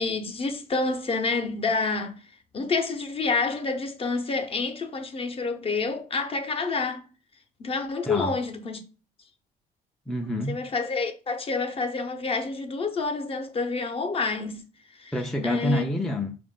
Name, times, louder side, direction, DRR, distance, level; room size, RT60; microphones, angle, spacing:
voice 1, 0.0-2.2 2.5-7.1 7.6-8.8 10.5-14.6 14.9-15.1 15.4-15.8, left 4 dB, 35° left, 0.8 m, -28 dB
voice 2, 8.1-8.4 10.1-10.6 15.1-16.4, equal, ahead, 0.4 m, -28 dB
4.7 x 2.5 x 3.6 m
cardioid pair, 110°, 17 cm